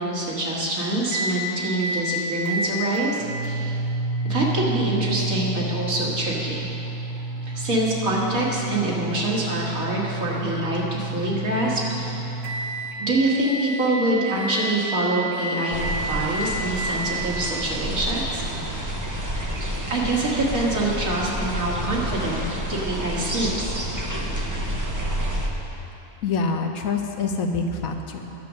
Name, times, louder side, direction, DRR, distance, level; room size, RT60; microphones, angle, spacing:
voice 1, 0.0-3.8 4.2-6.7 7.5-12.3 13.0-18.4 19.9-22.4 22.7-23.7, right 1 dB, 65° right, -4 dB, 2.2 m, -25 dB
sound 1, 1.1-1.4 1.8-2.1 2.5-13.0 13.4-14.0 14.4-14.9 15.3-15.9 16.3-16.8, right 2 dB, 50° right, 1.2 m, -30 dB
sound 2, 15.7-25.5, equal, 15° right, 0.6 m, -29 dB
voice 2, 26.2-28.3, left 4 dB, 70° left, 3 dB, 1.2 m, -26 dB
10.5 x 7.7 x 6.3 m, 3.0 s
omnidirectional pair, 1.6 m